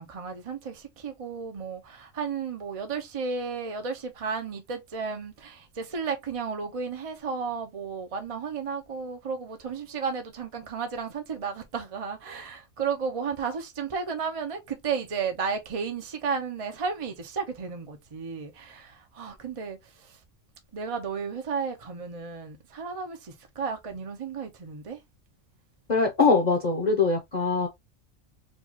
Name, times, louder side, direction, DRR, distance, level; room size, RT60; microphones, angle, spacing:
voice 1, 0.0-20.2 20.7-25.0, right 5 dB, 40° right, 0.5 m, -33 dB
voice 2, 25.9-27.7, left 4 dB, 40° left, 0.8 m, -22 dB
4.5 x 2.3 x 2.7 m
omnidirectional pair, 1.4 m